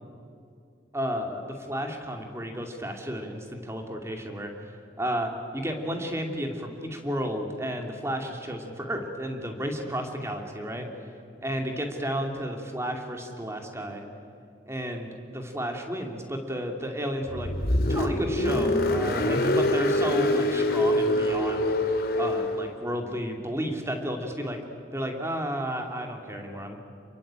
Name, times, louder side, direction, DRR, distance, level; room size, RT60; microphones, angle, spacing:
voice 1, 0.9-10.9 11.4-14.0 14.7-17.5 17.9-21.7 22.1-24.6 24.9-26.8, equal, 15° right, 3 dB, 2.8 m, -32 dB
Car, 17.3-22.7, left 1 dB, 55° left, 2.4 m, -25 dB
28.0 x 23.0 x 9.0 m, 2.5 s
head